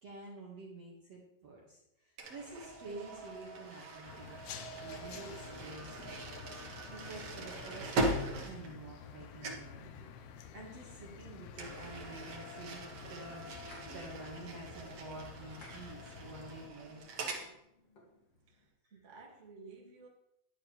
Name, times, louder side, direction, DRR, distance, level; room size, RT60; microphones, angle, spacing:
voice 1, 0.0-6.6 6.9-13.5 13.8-17.4 18.8-18.9, right 2 dB, 55° right, -3 dB, 1.9 m, -49 dB
sound 1, 2.2-9.2 9.4-9.7 11.5-17.5, right 1 dB, 90° right, 1.3 m, -41 dB
sound 2, 4.1-16.7, left 7 dB, 80° left, 2.2 m, -51 dB
sound 3, 13.1-18.7, left 1 dB, 40° left, 2.7 m, -62 dB
voice 2, 18.5-20.1, right 4 dB, 35° right, -2 dB, 1.1 m, -54 dB
12.0 x 10.5 x 3.3 m, 0.79 s
omnidirectional pair, 5.3 m